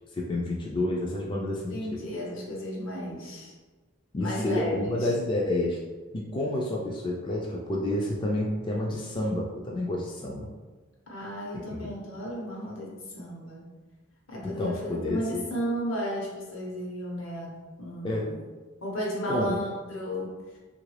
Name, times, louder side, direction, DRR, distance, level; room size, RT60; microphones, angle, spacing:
voice 1, 0.1-2.0 4.1-5.8 6.1-10.5 11.7-11.9 14.4-15.4 18.0-18.4 19.3-19.6, left 1 dB, 25° left, -2 dB, 0.3 m, -29 dB
voice 2, 1.7-3.5 4.2-5.1 11.1-13.6 14.3-17.5 17.8-18.3 18.8-20.3, equal, 80° left, -3 dB, 1.0 m, -33 dB
3.1 x 2.5 x 3.2 m, 1.3 s
head